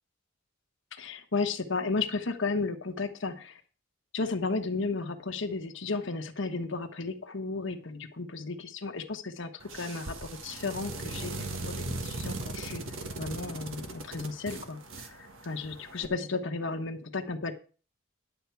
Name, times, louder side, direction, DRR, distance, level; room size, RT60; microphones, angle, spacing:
voice 1, 0.9-3.6 4.1-12.8 13.2-17.5, left 3 dB, 65° left, 5 dB, 1.1 m, -34 dB
sound 1, 9.6-16.1, right 2 dB, 75° right, 1.6 m, -39 dB
11.0 x 8.2 x 4.7 m, 0.37 s
head